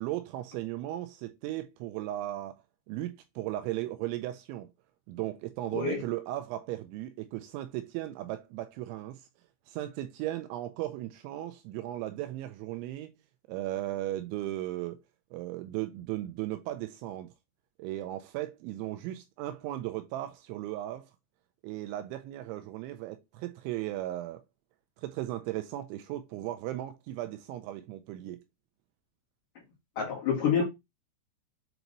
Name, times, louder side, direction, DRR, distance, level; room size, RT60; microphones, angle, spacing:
voice 1, 0.0-4.7 5.1-9.2 9.7-13.1 13.5-15.0 15.3-17.3 17.8-21.1 21.6-24.4 25.0-28.4, right 14 dB, 85° right, 2.8 m, -36 dB
voice 2, 5.7-6.0 30.0-30.6, left 7 dB, 55° left, 2.8 m, -27 dB
7.9 x 3.0 x 3.9 m
omnidirectional pair, 5.7 m